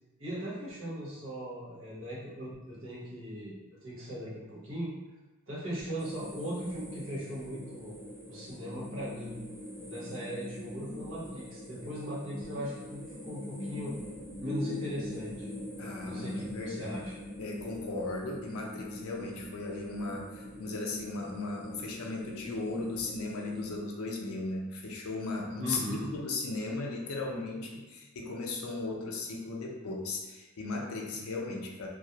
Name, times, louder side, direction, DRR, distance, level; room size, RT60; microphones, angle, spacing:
voice 1, 0.2-4.9 5.5-8.0 8.3-9.4 9.9-14.0 14.4-15.5 16.0-17.1 25.6-26.1, equal, 60° right, -7 dB, 0.9 m, -39 dB
sound 1, 6.0-23.8, left 1 dB, 10° right, 0.4 m, -43 dB
voice 2, 15.8-17.0 17.4-31.9, left 3 dB, 75° left, 0 dB, 0.5 m, -36 dB
2.3 x 2.0 x 2.8 m, 1.1 s
head